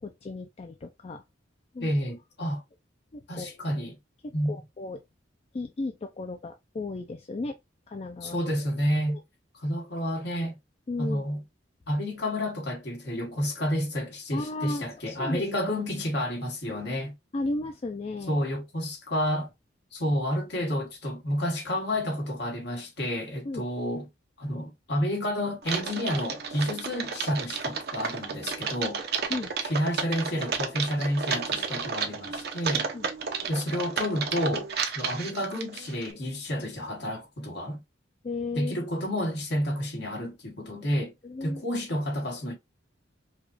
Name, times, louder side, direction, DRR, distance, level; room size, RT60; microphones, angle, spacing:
voice 1, 0.0-1.2 1.7-1.9 3.1-3.8 4.2-5.0 5.5-7.6 7.9-8.4 9.1-9.2 10.9-11.3 14.3-15.4 17.3-18.4 23.4-23.7 29.3-29.5 32.9-33.1 38.2-38.8 41.2-41.6, left 2 dB, 35° left, 0.4 m, -35 dB
voice 2, 1.8-2.6 3.3-4.0 4.3-4.5 8.2-9.2 9.5-10.5 11.0-11.4 11.9-17.1 18.3-19.5 19.9-24.0 24.4-29.0 29.7-32.9 33.5-34.7 34.9-37.8 38.5-41.1 41.4-42.5, equal, 60° left, 1.5 m, -30 dB
Typing, 25.6-36.1, right 5 dB, 55° right, 0.7 m, -32 dB
4.9 x 2.3 x 2.5 m
head